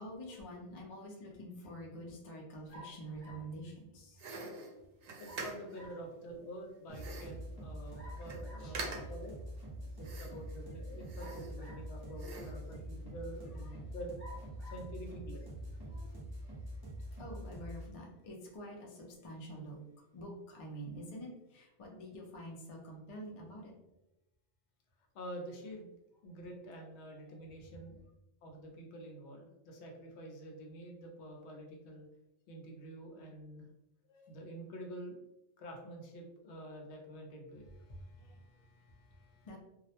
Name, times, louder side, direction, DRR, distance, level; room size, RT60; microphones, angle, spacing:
voice 1, 0.0-4.4 8.6-9.1 9.7-10.4 13.4-13.9 14.6-14.7 15.6-19.8 20.1-23.7 26.8-26.9 27.7-27.8 37.7-39.6, equal, 45° left, -1 dB, 0.4 m, -48 dB
sound 1, 2.7-3.5 5.2-6.1 8.0-8.8 11.2-12.0 12.8-12.9 14.2-14.9, left 1 dB, 25° left, 0.8 m, -53 dB
sound 2, 4.2-5.9 6.9-7.4 7.9-8.0 8.2-8.4 8.7-9.3 10.0-10.6 11.0-11.8 12.2-12.6, right 3 dB, 65° right, 0.8 m, -45 dB
voice 2, 5.2-9.3 10.0-15.5 25.1-28.0 28.4-32.1 32.5-33.7 34.1-35.2 35.6-37.7, right 1 dB, 75° left, 1 dB, 0.9 m, -47 dB
sound 3, 6.9-17.9, equal, 30° right, 0.4 m, -45 dB
2.3 x 2.0 x 2.8 m, 0.92 s
omnidirectional pair, 1.2 m